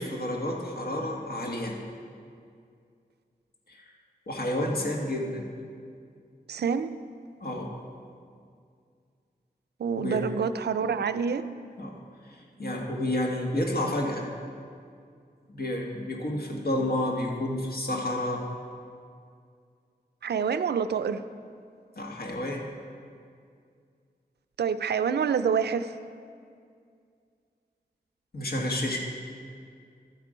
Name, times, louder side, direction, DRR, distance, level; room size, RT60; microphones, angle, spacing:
voice 1, 0.0-1.8 3.7-3.9 4.3-5.5 7.4-7.7 10.0-10.2 11.8-11.9 12.2-14.3 15.5-18.4 21.9-22.7 28.3-29.0, left 1 dB, 65° left, -1 dB, 1.6 m, -30 dB
voice 2, 6.5-6.9 9.8-11.4 20.2-21.2 24.6-26.0, right 6 dB, 85° right, 11 dB, 0.4 m, -27 dB
12.5 x 8.2 x 5.0 m, 2.3 s
wide cardioid pair, 90°, 17 cm